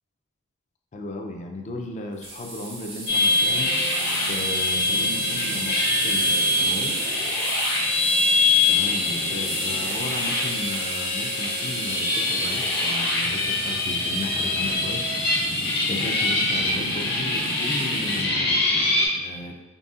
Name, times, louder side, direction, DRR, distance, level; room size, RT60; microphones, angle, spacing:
voice 1, 0.9-7.0 8.7-18.6 19.1-19.6, left 2 dB, 35° left, 3 dB, 0.4 m, -35 dB
cooking - egg - butter in skillet & eggs being scrambled, 2.2-18.2, right 2 dB, 75° right, 1.5 m, -34 dB
sound 1, 3.1-19.1, left 2 dB, 50° left, 0.8 m, -24 dB
3.9 x 3.5 x 2.4 m, 1.1 s
head